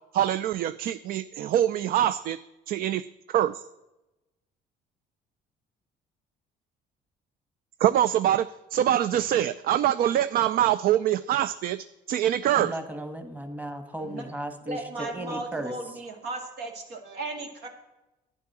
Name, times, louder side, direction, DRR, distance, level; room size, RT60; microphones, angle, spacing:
voice 1, 0.1-2.4 2.7-3.6 7.8-12.8, right 11 dB, 60° right, 15 dB, 0.4 m, -24 dB
voice 2, 12.5-15.7, right 1 dB, 10° right, 7 dB, 1.4 m, -35 dB
voice 3, 14.7-17.7, right 2 dB, 75° right, 3 dB, 2.5 m, -36 dB
11.0 x 9.8 x 6.0 m, 1.0 s
cardioid pair, 110°, 17 cm